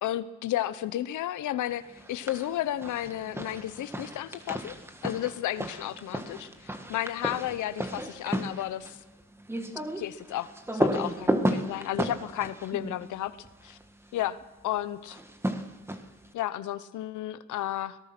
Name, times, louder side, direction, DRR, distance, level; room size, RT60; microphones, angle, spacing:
voice 1, 0.0-1.8 2.1-4.8 5.0-9.0 10.0-13.3 13.6-13.8 14.1-14.4 14.6-15.2 16.3-18.0, left 13 dB, 80° left, 14 dB, 0.9 m, -32 dB
sound 1, 2.0-2.5 2.8-13.8 15.0-16.3, right 1 dB, 10° right, 1.7 m, -33 dB
24.0 x 18.0 x 6.0 m, 1.1 s
cardioid pair, 90°, 30 cm